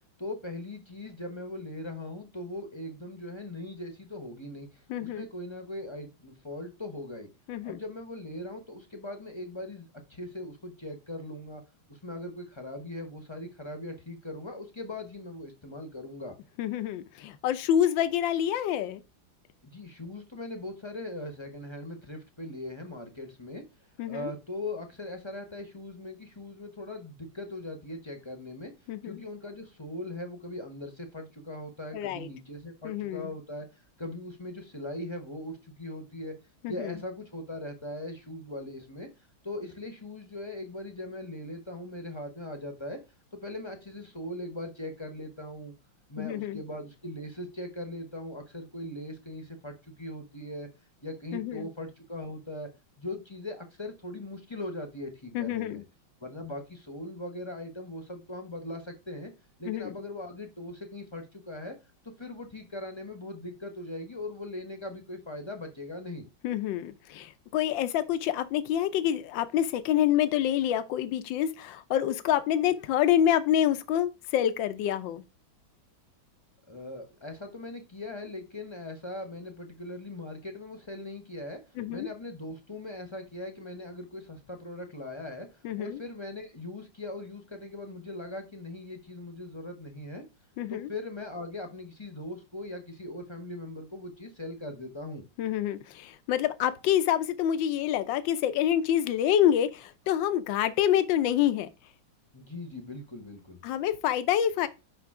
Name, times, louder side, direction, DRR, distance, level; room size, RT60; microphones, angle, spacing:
voice 1, 0.2-7.3 7.6-11.6 11.9-16.3 19.6-23.6 24.1-28.7 29.0-36.3 36.7-39.1 39.4-43.0 43.3-45.7 46.1-50.7 51.0-52.7 53.0-55.8 56.2-59.3 59.6-61.7 62.0-66.3 76.7-81.6 81.9-90.3 90.7-95.2 102.3-103.6, left 1 dB, 20° left, 0.8 m, -40 dB
voice 2, 4.9-5.3 7.5-7.8 16.6-19.0 24.0-24.3 28.9-29.2 31.9-32.3 32.8-33.3 36.6-36.9 46.2-46.6 51.3-51.7 55.3-55.8 59.7-59.9 66.4-75.2 81.8-82.1 85.6-86.0 90.6-90.9 95.4-101.7 103.6-104.7, left 10 dB, 75° left, 1.4 m, -27 dB
5.9 x 5.3 x 3.6 m
omnidirectional pair, 2.2 m